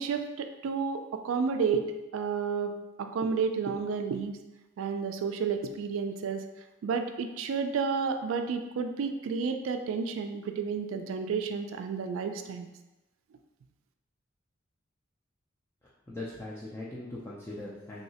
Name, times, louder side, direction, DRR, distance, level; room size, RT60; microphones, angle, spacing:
voice 1, 0.0-1.9 2.1-4.4 4.8-6.4 6.8-12.7, right 5 dB, 80° right, 7 dB, 0.3 m, -31 dB
voice 2, 16.1-18.0, left 2 dB, 15° left, -7 dB, 0.3 m, -40 dB
3.1 x 2.7 x 2.8 m, 1.0 s
head